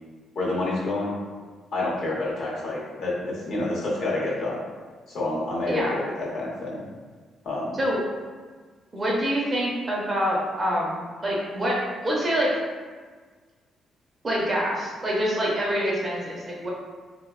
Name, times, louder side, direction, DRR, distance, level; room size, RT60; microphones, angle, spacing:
voice 1, 0.4-1.2 1.7-4.6 5.1-6.8 7.4-7.8, left 2 dB, 55° left, -5 dB, 0.7 m, -28 dB
voice 2, 8.9-12.6 14.2-16.7, equal, 20° right, -4 dB, 0.5 m, -26 dB
3.0 x 2.0 x 2.3 m, 1.5 s
cardioid pair, 160°, 0 cm